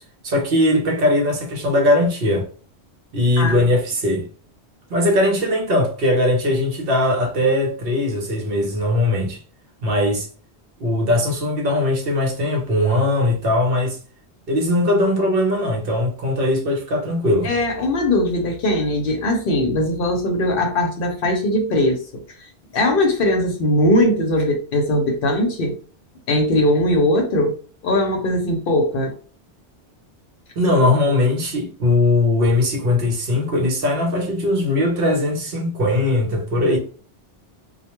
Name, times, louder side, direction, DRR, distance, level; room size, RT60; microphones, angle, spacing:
voice 1, 0.0-2.5 3.1-4.3 4.9-9.4 9.8-10.3 10.8-14.0 14.5-17.5 30.6-36.8, left 1 dB, 60° right, 0.9 m, -20 dB
voice 2, 3.4-3.7 17.4-22.5 22.7-25.8 26.3-27.6 27.8-29.1, left 1 dB, 60° left, 0.7 m, -20 dB
2.2 x 2.1 x 2.9 m
omnidirectional pair, 1.1 m